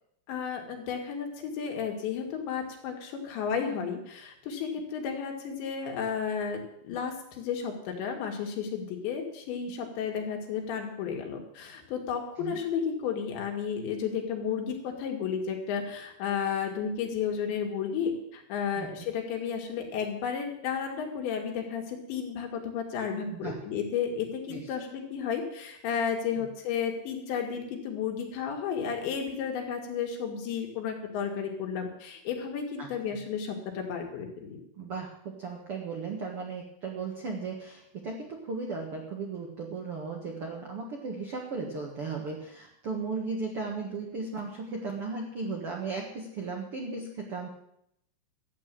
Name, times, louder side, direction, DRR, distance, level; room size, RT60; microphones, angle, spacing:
voice 1, 0.3-34.6, left 7 dB, 75° left, 2 dB, 4.2 m, -33 dB
voice 2, 32.8-33.2 34.8-47.5, right 4 dB, 85° right, 0 dB, 1.2 m, -36 dB
13.5 x 8.7 x 7.6 m, 0.76 s
omnidirectional pair, 5.3 m